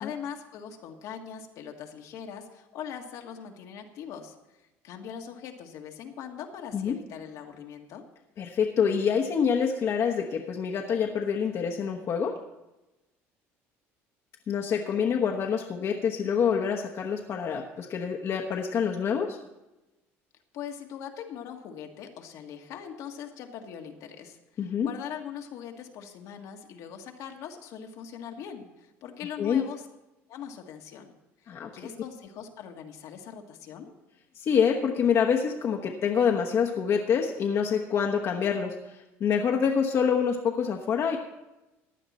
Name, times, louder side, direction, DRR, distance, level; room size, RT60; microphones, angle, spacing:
voice 1, 0.0-8.0 20.5-29.8 30.3-31.1 31.4-33.9, left 8 dB, 70° left, 3 dB, 1.6 m, -41 dB
voice 2, 8.4-12.3 14.5-19.4 24.6-24.9 29.4-29.6 31.5-31.7 34.4-41.2, left 7 dB, 50° left, 1 dB, 1.1 m, -26 dB
15.5 x 9.9 x 4.3 m, 1.0 s
supercardioid pair, 100°, 6 cm